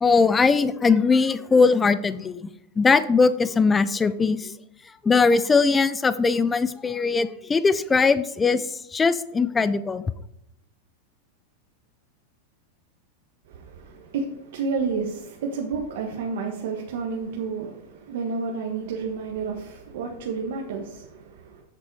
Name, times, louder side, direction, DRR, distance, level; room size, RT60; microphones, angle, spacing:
voice 1, 0.0-2.5 2.8-4.5 5.0-10.1, left 4 dB, 10° left, 0.4 m, -20 dB
voice 2, 13.5-21.6, right 5 dB, 70° right, 1.4 m, -31 dB
8.0 x 6.8 x 4.7 m
supercardioid pair, 155°, 0 cm